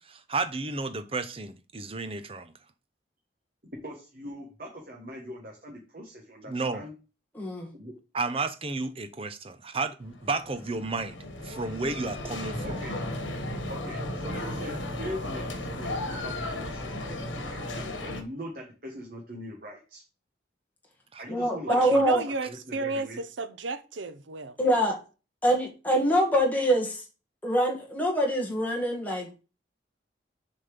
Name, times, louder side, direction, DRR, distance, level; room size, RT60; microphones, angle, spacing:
voice 1, 0.0-2.5 6.5-6.8 8.1-11.2 11.4-12.8 21.1-21.2, right 3 dB, 30° right, 0.6 m, -32 dB
voice 2, 3.8-6.9 7.7-7.9 12.6-13.0 13.7-20.0 21.2-22.1 22.4-23.2, equal, 45° right, 1.5 m, -41 dB
voice 3, 7.3-7.7 21.3-22.2 24.6-25.0 25.4-27.0 27.4-29.4, equal, 10° left, 1.8 m, -25 dB
sound 1, 10.0-18.2, left 1 dB, 80° left, 1.4 m, -35 dB
voice 4, 21.7-24.6, right 3 dB, 80° right, 0.8 m, -32 dB
6.9 x 4.2 x 5.2 m
head